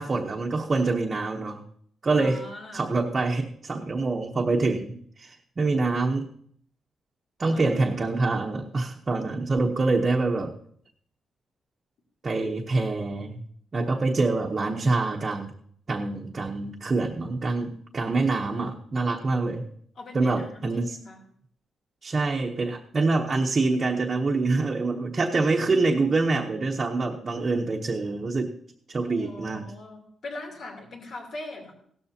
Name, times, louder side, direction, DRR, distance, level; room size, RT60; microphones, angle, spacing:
voice 1, 0.0-1.6 2.0-2.4 2.7-6.3 7.4-10.5 12.2-13.4 13.7-15.5 15.9-19.6 20.1-21.0 22.0-28.5 28.9-29.7, right 3 dB, 30° right, -1 dB, 1.0 m, -25 dB
voice 2, 2.1-2.9 7.5-7.6 8.0-8.2 19.9-21.2 29.1-31.7, left 2 dB, 60° left, 0 dB, 3.3 m, -41 dB
16.5 x 13.0 x 2.9 m, 0.62 s
cardioid pair, 130°, 0 cm